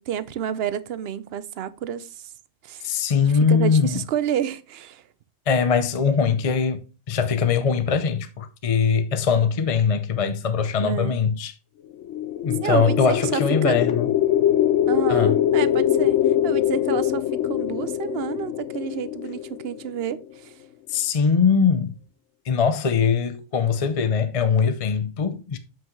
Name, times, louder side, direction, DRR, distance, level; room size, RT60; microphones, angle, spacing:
voice 1, 0.0-2.3 2.6-2.9 3.5-5.0 10.8-11.2 12.6-13.8 14.9-20.5, right 9 dB, 65° right, 0.8 m, -29 dB
voice 2, 2.8-4.0 5.5-6.8 7.1-11.5 12.4-14.1 15.1-15.3 20.9-21.9 22.5-25.6, left 6 dB, 40° left, 0.6 m, -21 dB
sound 1, 11.9-20.1, left 11 dB, 90° left, 0.9 m, -23 dB
7.5 x 6.0 x 3.1 m
omnidirectional pair, 1.2 m